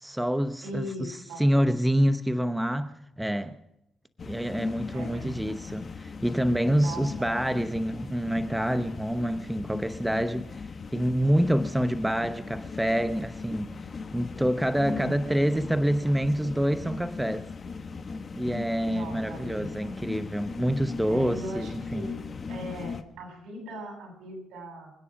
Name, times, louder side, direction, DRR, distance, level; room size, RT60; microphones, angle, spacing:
voice 1, 0.0-3.5 4.3-13.7 14.1-17.4 18.4-22.1, equal, 5° right, 0.8 m, -27 dB
voice 2, 0.6-1.5 4.9-5.6 6.7-7.3 14.8-15.3 18.9-20.0 21.1-22.2 22.5-24.9, equal, 75° right, 8.0 m, -39 dB
sound 1, 4.2-23.0, left 4 dB, 40° left, 1.3 m, -39 dB
26.0 x 9.9 x 5.2 m
cardioid pair, 90°, 0 cm